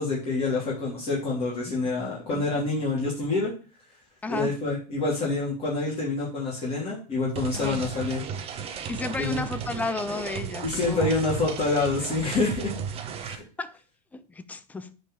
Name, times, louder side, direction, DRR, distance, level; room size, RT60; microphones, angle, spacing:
voice 1, 0.0-3.5 4.3-8.2 9.2-9.4 10.6-12.7 13.2-13.4, left 3 dB, 30° left, 3.2 m, -27 dB
voice 2, 4.2-4.6 7.6-7.8 8.9-11.1 13.6-13.8 14.1-14.9, left 3 dB, 5° left, 0.5 m, -33 dB
sound 1, 7.4-13.4, right 7 dB, 30° right, 1.2 m, -35 dB
8.8 x 4.5 x 4.8 m
supercardioid pair, 135°, 21 cm